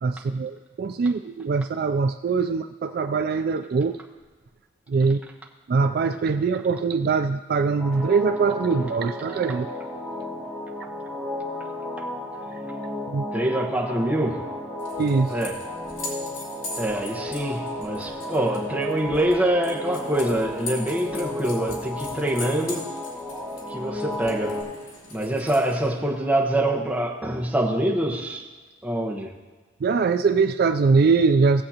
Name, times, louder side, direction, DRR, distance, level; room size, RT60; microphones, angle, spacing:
voice 1, 0.0-4.0 4.9-5.2 5.7-9.7 13.1-13.3 15.0-15.4 29.8-31.6, right 4 dB, 50° right, 9 dB, 0.3 m, -22 dB
sound 1, 7.8-24.6, left 1 dB, 10° left, 2.5 m, -33 dB
voice 2, 13.3-14.5 15.3-15.6 16.8-22.9 23.7-24.6 25.1-28.4 28.8-29.3, right 1 dB, 5° right, -3 dB, 1.1 m, -25 dB
sound 2, 14.8-26.0, left 2 dB, 80° left, 2.8 m, -41 dB
17.5 x 7.7 x 2.9 m, 1.4 s
head